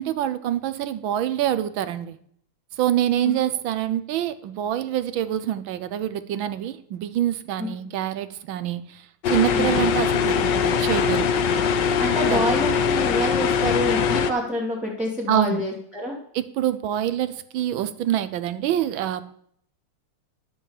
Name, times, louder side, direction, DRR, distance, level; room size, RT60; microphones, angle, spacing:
voice 1, 0.0-2.2 2.8-11.3 12.3-12.5 15.3-15.6 16.3-19.3, right 11 dB, 75° right, 12 dB, 1.3 m, -26 dB
sound 1, 9.2-14.3, left 6 dB, 65° left, 1.3 m, -22 dB
voice 2, 12.0-16.2, equal, ahead, -5 dB, 1.8 m, -27 dB
10.5 x 7.1 x 7.1 m, 0.65 s
omnidirectional pair, 2.4 m